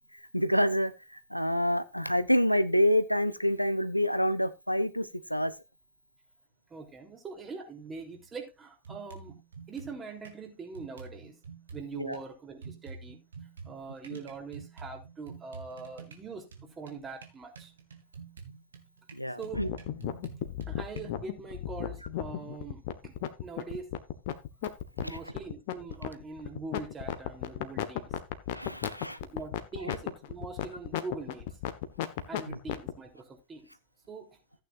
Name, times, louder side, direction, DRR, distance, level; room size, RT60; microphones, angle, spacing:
voice 1, 0.1-5.5 11.9-12.2 14.1-14.2 19.1-19.7 25.0-25.2 28.5-29.2 32.5-32.6, equal, 90° left, 0.8 m, -28 dB
voice 2, 6.7-9.4 9.7-11.4 11.7-13.2 13.7-17.7 19.4-19.7 20.7-23.9 25.0-28.2 29.2-31.6 32.3-33.7 34.1-34.4, right 4 dB, 20° right, 3.6 m, -43 dB
sound 1, 8.1-8.3 8.8-10.4 10.7-12.2 12.6-21.0, right 5 dB, 65° right, 2.5 m, -48 dB
sound 2, 19.5-32.9, left 12 dB, 50° left, 1.4 m, -34 dB
14.5 x 9.2 x 2.6 m
figure-of-eight pair, 90°, 0 cm